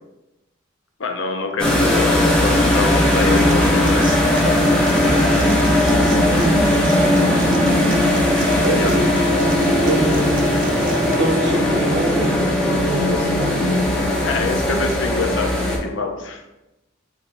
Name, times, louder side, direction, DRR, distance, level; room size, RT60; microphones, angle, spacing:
voice 1, 1.0-4.1 5.2-5.4 8.6-9.1 14.2-16.4, left 3 dB, 75° left, 4 dB, 0.6 m, -26 dB
sound 1, 1.6-15.8, left 1 dB, 5° left, 0.6 m, -18 dB
Human voice / Acoustic guitar, 3.2-11.1, right 4 dB, 45° right, 0.4 m, -30 dB
voice 2, 6.1-6.6 8.6-9.3 9.8-10.5 11.1-13.9, right 2 dB, 60° right, 1 dB, 0.8 m, -25 dB
4.9 x 3.4 x 2.5 m, 0.96 s
head